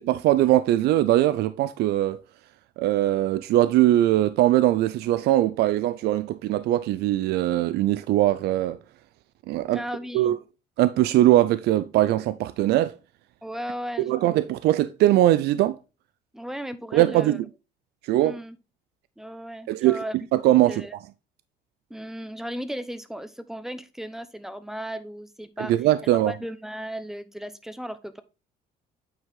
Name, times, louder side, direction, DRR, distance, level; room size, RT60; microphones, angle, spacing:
voice 1, 0.0-2.2 2.8-8.8 9.5-9.8 10.1-10.4 10.8-13.0 14.0-15.8 16.9-17.4 18.0-18.4 19.7-20.0 20.3-20.9 25.6-26.3, right 14 dB, 75° right, 0.4 m, -21 dB
voice 2, 9.7-10.4 13.4-14.3 16.3-17.4 18.2-18.6 19.2-20.1 20.7-20.9 21.9-25.7 26.3-28.2, equal, ahead, 0.8 m, -36 dB
9.1 x 4.7 x 3.6 m
cardioid pair, 110°, 17 cm